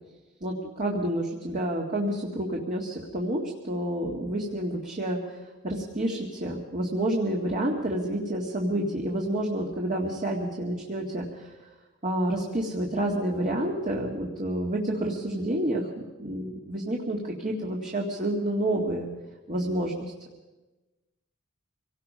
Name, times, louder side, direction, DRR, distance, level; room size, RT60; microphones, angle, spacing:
voice 1, 0.4-11.5 12.0-15.9 16.2-19.1 19.5-20.1, right 1 dB, 40° right, -1 dB, 2.1 m, -29 dB
25.5 x 18.5 x 5.6 m, 1.1 s
head